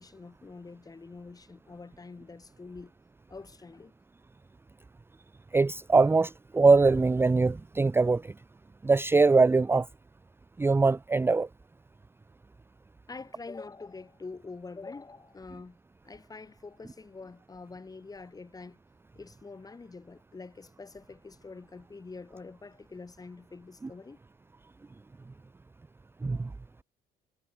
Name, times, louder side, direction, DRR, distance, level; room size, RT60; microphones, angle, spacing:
voice 1, 0.0-2.9 3.3-3.9 13.1-15.8 16.0-18.8 19.2-24.2, left 4 dB, 20° left, 5.6 m, -45 dB
voice 2, 5.5-8.3 8.8-9.9 10.6-11.5 26.2-26.5, right 3 dB, 15° right, 0.6 m, -22 dB
cardioid pair, 110°, 17 cm